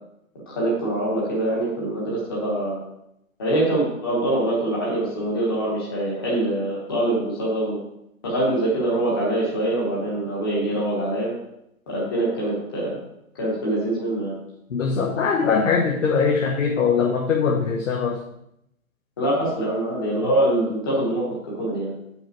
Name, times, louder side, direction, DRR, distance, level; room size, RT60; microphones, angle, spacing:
voice 1, 0.5-2.8 3.4-7.8 8.2-11.3 11.9-13.0 13.4-14.3 19.2-21.9, right 1 dB, 15° left, -5 dB, 1.1 m, -24 dB
voice 2, 14.7-18.2, left 5 dB, 60° left, 1 dB, 1.0 m, -21 dB
7.4 x 5.5 x 4.5 m, 0.79 s
hypercardioid pair, 180°, 43 cm